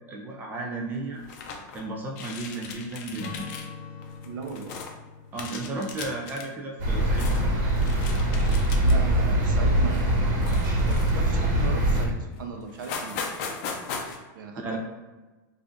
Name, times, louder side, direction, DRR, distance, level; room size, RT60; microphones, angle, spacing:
voice 1, 0.1-1.2 1.7-3.5 5.3-7.6 14.2-14.3 14.6-14.8, right 2 dB, 20° right, -1 dB, 0.4 m, -34 dB
sound 1, 1.2-1.8 2.1-3.7 4.0-4.9 5.3-6.5 6.9-7.5 7.8-9.1 9.5-9.7 10.4-11.3 11.9-12.0 12.3-12.4 12.7-14.2, left 5 dB, 50° left, 0.5 m, -38 dB
Strum, 3.2-7.8, left 5 dB, 80° left, 0.8 m, -44 dB
voice 2, 4.2-4.9 8.8-13.2 14.3-14.8, right 5 dB, 80° right, 4 dB, 0.6 m, -37 dB
sound 2, 6.8-12.1, right 1 dB, 65° right, 1.2 m, -23 dB
3.4 x 2.5 x 3.7 m, 1.2 s
supercardioid pair, 160°, 11 cm